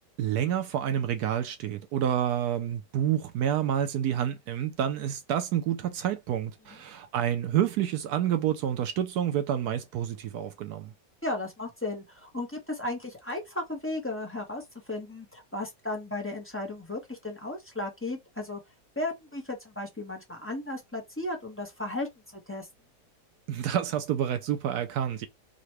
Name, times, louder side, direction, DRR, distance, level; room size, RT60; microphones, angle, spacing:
voice 1, 0.2-10.9 23.5-25.3, right 10 dB, 70° right, 1.0 m, -28 dB
voice 2, 11.2-14.6 14.9-18.6 19.0-22.7, left 2 dB, 10° left, 0.6 m, -35 dB
3.8 x 2.2 x 3.0 m
omnidirectional pair, 1.9 m